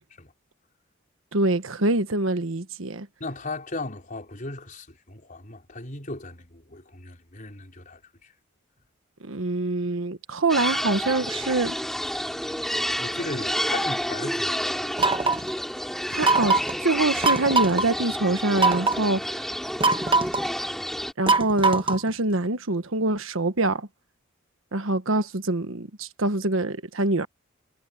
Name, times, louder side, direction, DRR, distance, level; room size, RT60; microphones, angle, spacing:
voice 1, 1.3-3.1 9.2-11.7 16.1-19.4 21.2-23.9 24.7-27.3, right 2 dB, 90° right, 1.4 m, -25 dB
voice 2, 3.2-8.3 13.0-15.0, left 2 dB, 40° left, 5.1 m, -37 dB
sound 1, 10.5-21.1, equal, ahead, 5.4 m, -29 dB
sound 2, 15.0-15.5 16.2-16.8 17.2-17.9 18.6-19.0 19.8-20.5 21.3-22.1, right 3 dB, 25° right, 1.2 m, -22 dB
head